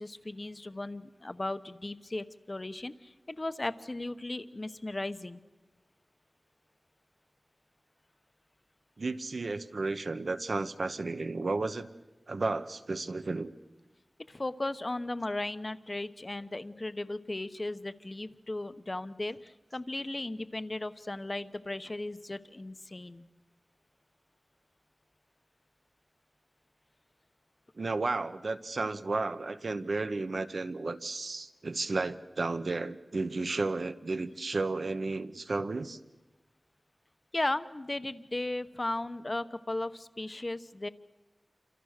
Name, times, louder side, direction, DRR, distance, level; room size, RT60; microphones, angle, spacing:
voice 1, 0.0-5.4 14.3-23.3 37.3-40.9, left 2 dB, 35° left, 12 dB, 1.0 m, -36 dB
voice 2, 9.0-11.9 12.3-13.5 27.8-36.0, right 3 dB, 70° right, 11 dB, 1.1 m, -33 dB
28.5 x 26.0 x 6.6 m, 1.1 s
wide cardioid pair, 80°, 0 cm